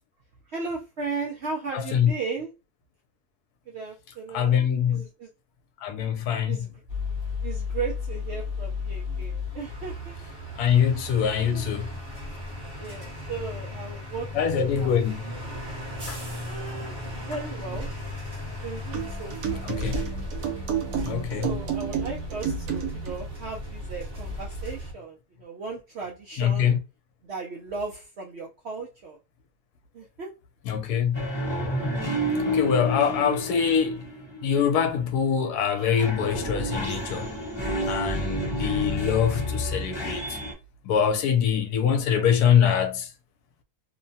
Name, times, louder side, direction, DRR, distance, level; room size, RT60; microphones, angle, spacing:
voice 1, 0.5-2.5 3.7-5.3 6.5-6.7 7.4-10.2 10.6-10.7 11.4-11.7 12.8-15.0 15.2-15.5 16.4-17.9 18.5-19.7 21.4-26.7 27.2-29.2 29.9-30.3 41.8-42.4, right 4 dB, 70° right, 0.6 m, -36 dB
voice 2, 1.7-2.1 4.3-5.0 5.8-6.7 10.6-11.9 14.3-15.2 16.1-16.2 19.6-20.0 21.0-21.5 26.4-26.8 30.7-31.3 32.5-34.1 34.4-37.3 37.9-40.4 40.8-43.1, left 8 dB, 80° left, 1.1 m, -24 dB
sound 1, 6.9-24.9, left 2 dB, 40° right, 1.1 m, -35 dB
sound 2, 18.9-23.2, right 7 dB, 90° right, 1.3 m, -31 dB
sound 3, 31.1-35.3 35.8-40.5, equal, 20° left, 0.9 m, -30 dB
2.9 x 2.2 x 2.6 m
omnidirectional pair, 1.7 m